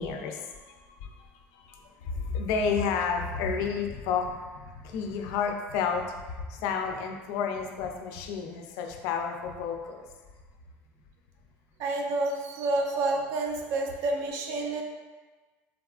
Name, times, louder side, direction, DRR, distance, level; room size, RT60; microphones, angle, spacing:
voice 1, 0.0-10.0, left 6 dB, 65° left, 3 dB, 0.3 m, -31 dB
voice 2, 11.8-14.8, right 2 dB, 55° right, 2 dB, 0.4 m, -29 dB
3.5 x 2.3 x 2.3 m, 1.3 s
cardioid pair, 165°, 6 cm